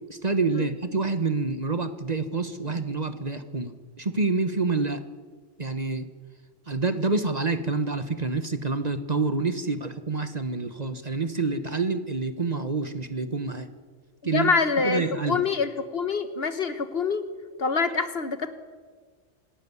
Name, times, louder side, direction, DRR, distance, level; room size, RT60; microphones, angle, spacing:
voice 1, 0.1-5.0 5.6-6.1 6.7-13.7 14.2-14.5 14.8-15.4, right 3 dB, 35° right, 10 dB, 1.2 m, -27 dB
voice 2, 14.3-17.2 17.6-18.5, left 4 dB, 55° left, 11 dB, 1.5 m, -26 dB
26.5 x 12.5 x 9.7 m, 1.5 s
omnidirectional pair, 1.3 m